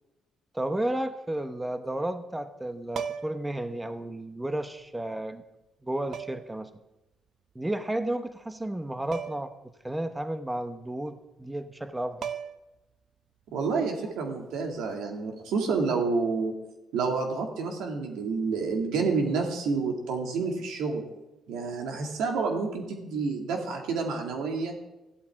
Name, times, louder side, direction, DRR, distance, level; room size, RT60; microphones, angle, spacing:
voice 1, 0.5-5.4 5.8-6.7 7.5-12.3, right 1 dB, 10° right, 9 dB, 0.8 m, -32 dB
sound 1, 2.9-3.5 4.8-4.9 6.1-6.6 9.1-9.5 9.9-10.0 11.8-11.9 12.2-12.8 14.8-15.0, right 8 dB, 65° right, 0.6 m, -37 dB
voice 2, 13.5-16.5 16.9-21.0 21.5-24.7, right 4 dB, 90° right, 2 dB, 2.2 m, -29 dB
14.0 x 12.0 x 3.6 m, 1.0 s
cardioid pair, 90°, 0 cm